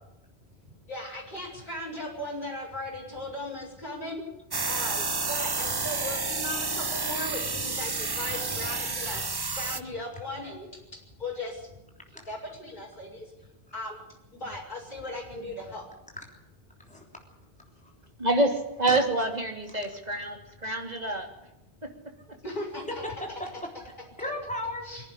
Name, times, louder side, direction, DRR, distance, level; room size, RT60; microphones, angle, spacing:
voice 1, 0.9-4.2 4.7-10.8 11.2-11.7 12.3-13.3 13.7-14.0 14.3-15.9 22.4-22.8 24.9-25.0, left 1 dB, 50° left, -2 dB, 6.9 m, -37 dB
sound 1, 4.5-9.8, right 3 dB, 25° right, 0.8 m, -30 dB
voice 2, 16.8-17.2 17.8-17.9 18.9-19.0 19.7-19.8 23.0-23.7 24.2-24.9, left 1 dB, 5° left, 1 dB, 3.5 m, -36 dB
voice 3, 18.2-21.3 21.8-21.9, right 2 dB, 40° right, 3 dB, 3.2 m, -27 dB
24.5 x 11.0 x 10.0 m, 0.91 s
omnidirectional pair, 1.1 m